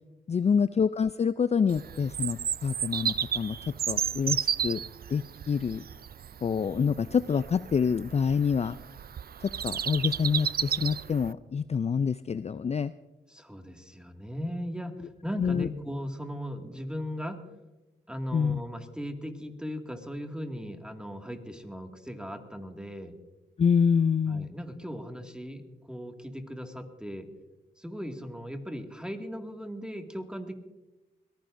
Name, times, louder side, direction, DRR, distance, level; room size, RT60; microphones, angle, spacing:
voice 1, 0.3-4.8 5.1-5.8 6.4-8.8 9.4-12.9 15.4-15.7 18.3-18.6 23.6-24.5, left 6 dB, 35° left, 14 dB, 0.4 m, -27 dB
Bird vocalization bird call bird song, 1.7-11.3, right 8 dB, 55° right, 0.5 m, -33 dB
voice 2, 13.3-17.4 18.1-23.1 24.3-27.3 27.8-30.5, equal, 5° right, 4 dB, 2.1 m, -38 dB
22.0 x 15.0 x 2.6 m, 1.0 s
supercardioid pair, 50°, 19 cm